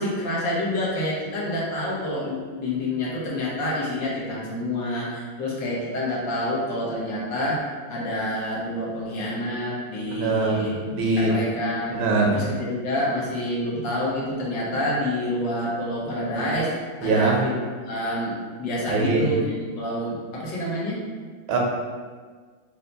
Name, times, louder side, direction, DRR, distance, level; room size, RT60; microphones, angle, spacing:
voice 1, 0.0-7.6 7.9-10.8 11.2-12.0 12.3-18.3 18.6-21.0, left 1 dB, 65° left, -5 dB, 1.7 m, -28 dB
voice 2, 10.1-11.3 11.9-12.4 17.0-17.4 18.9-19.2 21.5-21.6, right 3 dB, 85° right, -1 dB, 1.6 m, -22 dB
4.5 x 2.8 x 3.9 m, 1.5 s
omnidirectional pair, 2.2 m